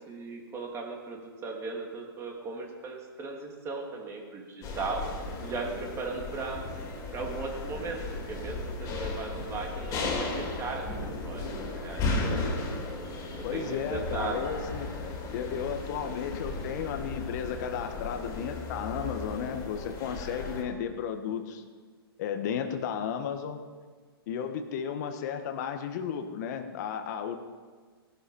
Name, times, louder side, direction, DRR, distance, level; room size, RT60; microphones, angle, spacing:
voice 1, 0.0-5.1 5.4-6.7 7.1-11.4 11.7-12.0 12.8-14.5, right 4 dB, 20° right, 1 dB, 2.8 m, -37 dB
sound 1, 4.6-20.6, left 2 dB, 25° left, 3.6 m, -35 dB
voice 2, 13.4-14.9 15.3-21.6 22.2-23.6 24.3-27.4, left 8 dB, 45° left, 6 dB, 1.6 m, -34 dB
18.0 x 12.0 x 5.5 m, 1.5 s
hypercardioid pair, 130°, 13 cm